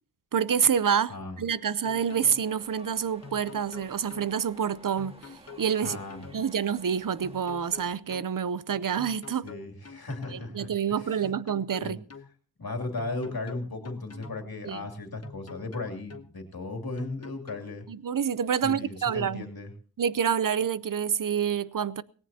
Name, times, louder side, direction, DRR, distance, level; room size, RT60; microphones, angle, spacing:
voice 1, 0.3-5.2 5.6-6.0 6.3-9.5 10.3-12.0 14.6-14.9 17.9-19.4 20.0-22.0, right 7 dB, 60° right, 0.7 m, -27 dB
voice 2, 1.1-1.4 5.8-6.3 9.4-11.3 11.8-12.0 12.6-17.8 18.6-19.7, left 2 dB, 75° left, 2.9 m, -36 dB
sound 1, 1.6-2.4 3.2-4.3 5.0-6.4 7.2-8.3 9.0-10.4 11.2-12.3 13.0-14.4 15.2-16.3 17.0-17.6, left 5 dB, 40° left, 1.1 m, -45 dB
sound 2, 1.9-8.0, right 1 dB, 15° right, 1.8 m, -53 dB
18.5 x 18.0 x 2.8 m
wide cardioid pair, 70°, 37 cm